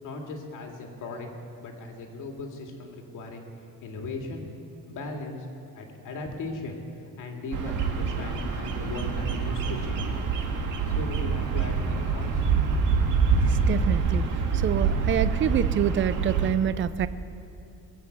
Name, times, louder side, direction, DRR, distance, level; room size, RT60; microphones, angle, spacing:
voice 1, 0.0-1.3 1.6-3.4 3.8-4.4 4.9-5.5 5.7-6.8 7.2-10.1 10.9-12.4, left 2 dB, 80° left, 2 dB, 2.3 m, -37 dB
Bird vocalization bird call bird song, 7.5-16.5, right 5 dB, 80° right, 1.8 m, -26 dB
voice 2, 13.5-14.3 14.6-17.1, right 9 dB, 40° right, 14 dB, 0.5 m, -26 dB
21.5 x 7.9 x 8.1 m, 2.7 s
cardioid pair, 160°, 31 cm